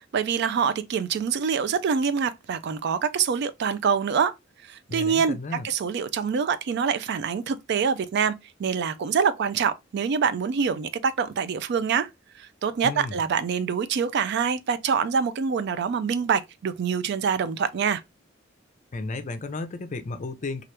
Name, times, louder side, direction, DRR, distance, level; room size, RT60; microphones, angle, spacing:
voice 1, 0.1-4.3 4.7-5.4 5.6-8.3 8.6-12.1 12.4-18.0, right 6 dB, 55° right, 0.3 m, -25 dB
voice 2, 4.9-5.7 12.8-13.2 18.9-20.6, left 3 dB, 40° left, 0.5 m, -33 dB
2.9 x 2.4 x 3.2 m
head